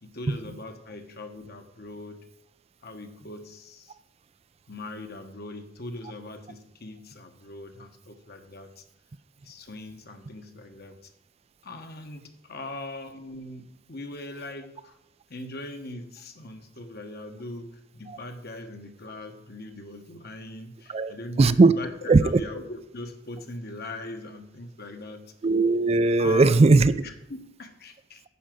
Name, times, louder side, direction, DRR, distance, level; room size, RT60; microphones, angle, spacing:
voice 1, 0.0-2.3 2.8-3.9 4.7-8.8 9.4-10.9 11.6-15.0 15.3-25.3 26.2-26.6 27.0-28.2, left 2 dB, 55° left, 6 dB, 1.3 m, -40 dB
voice 2, 21.4-21.7 22.1-22.4 25.4-26.9, right 3 dB, 30° right, 14 dB, 0.4 m, -18 dB
10.0 x 4.9 x 7.7 m, 0.86 s
head